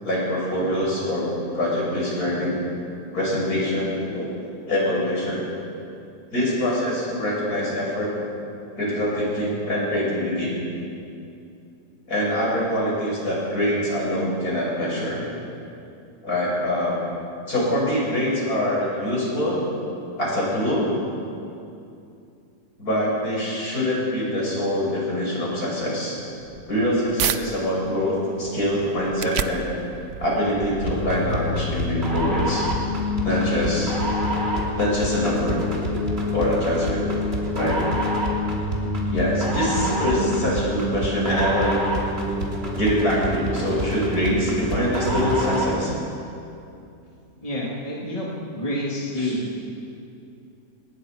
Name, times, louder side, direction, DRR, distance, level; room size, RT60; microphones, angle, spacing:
voice 1, 0.0-1.3 1.5-2.6 3.1-4.3 4.7-5.5 6.3-8.1 8.8-10.5 12.1-15.2 16.2-17.0 17.5-19.7 20.2-20.9 22.8-26.2 26.7-29.7 30.2-32.7 33.2-34.0 34.8-35.6 36.3-37.0 37.5-37.8 39.1-41.8 42.7-45.9 49.2-49.3, left 1 dB, 60° left, -5 dB, 7.7 m, -24 dB
sound 1, 26.3-27.4 27.9-33.2, right 8 dB, 55° right, 0.9 m, -33 dB
sound 2, 30.9-45.8, equal, 35° right, 3.4 m, -26 dB
voice 2, 33.4-33.8 47.4-49.7, left 1 dB, 20° left, -5 dB, 2.9 m, -29 dB
26.5 x 20.5 x 5.3 m, 2.6 s
omnidirectional pair, 1.8 m